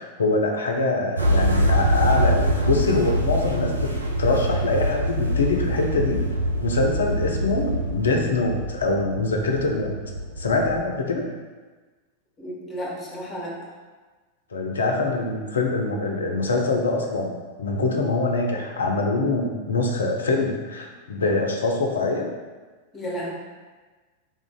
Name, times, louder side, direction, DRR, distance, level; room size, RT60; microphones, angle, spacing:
voice 1, 0.0-3.9 4.2-6.2 6.6-10.0 10.4-11.3 14.5-22.3, left 3 dB, 70° left, 2 dB, 0.5 m, -24 dB
sound 1, 1.2-10.8, equal, 85° right, 0.4 m, -24 dB
voice 2, 12.4-13.5 22.9-23.3, equal, 15° left, -4 dB, 1.1 m, -32 dB
3.6 x 2.5 x 3.6 m, 1.3 s
figure-of-eight pair, 90°, 0 cm